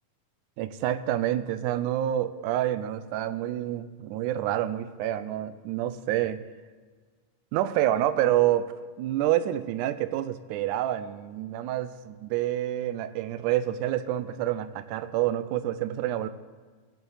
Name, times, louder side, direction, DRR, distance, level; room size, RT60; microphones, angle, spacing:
voice 1, 0.6-6.4 7.5-8.7 9.0-16.3, right 12 dB, 85° right, 12 dB, 2.0 m, -28 dB
17.0 x 6.7 x 3.9 m, 1.5 s
omnidirectional pair, 3.5 m